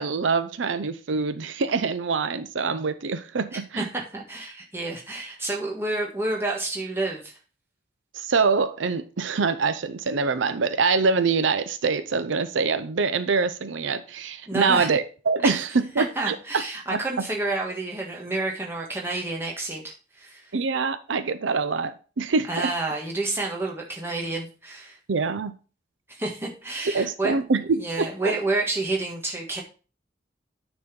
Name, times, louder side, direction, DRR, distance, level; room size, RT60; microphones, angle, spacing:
voice 1, 0.0-3.9 8.1-16.6 16.9-17.0 20.5-22.7 25.1-25.5 26.9-28.4, right 4 dB, 85° right, 0.6 m, -25 dB
voice 2, 3.5-7.4 14.5-14.9 15.4-15.5 16.0-20.5 22.5-25.0 26.2-27.3 27.7-29.6, right 2 dB, 10° right, 1.7 m, -29 dB
9.5 x 4.1 x 5.2 m
head